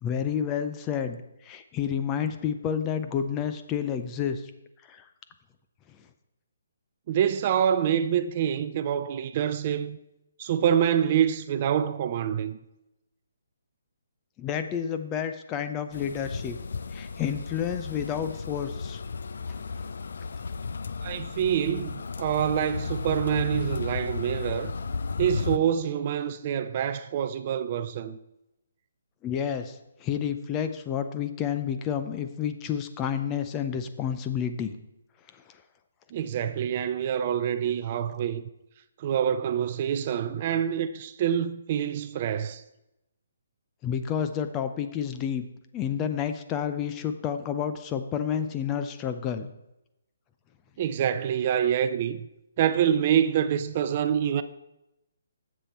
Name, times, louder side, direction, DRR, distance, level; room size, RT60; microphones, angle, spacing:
voice 1, 0.0-4.4 4.9-5.0 14.4-16.6 16.9-19.0 29.2-34.7 35.3-35.4 43.8-45.4 45.7-49.5, left 8 dB, 15° left, 0.6 m, -30 dB
voice 2, 7.1-10.0 10.4-12.6 21.0-24.7 25.2-28.2 36.1-38.4 39.0-42.6 50.8-52.3 52.6-54.4, right 9 dB, 35° right, 0.4 m, -26 dB
sound 1, 15.9-25.6, left 4 dB, 70° left, 0.4 m, -34 dB
10.0 x 7.4 x 4.3 m
hypercardioid pair, 165°, 0 cm